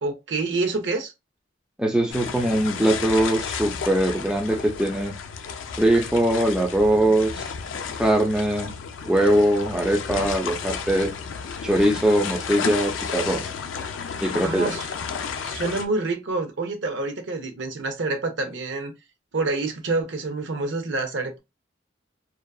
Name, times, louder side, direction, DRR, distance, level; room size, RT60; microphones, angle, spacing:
voice 1, 0.0-1.1 14.4-14.9 15.4-18.9 19.3-21.4, right 3 dB, 75° right, 0.7 m, -27 dB
voice 2, 1.8-5.1 5.8-7.5 8.0-8.7 9.0-11.1 11.6-13.5 14.2-14.7, right 1 dB, 5° right, 0.5 m, -21 dB
sound 1, 2.1-15.9, left 6 dB, 85° left, 0.4 m, -32 dB
2.7 x 2.3 x 2.3 m
head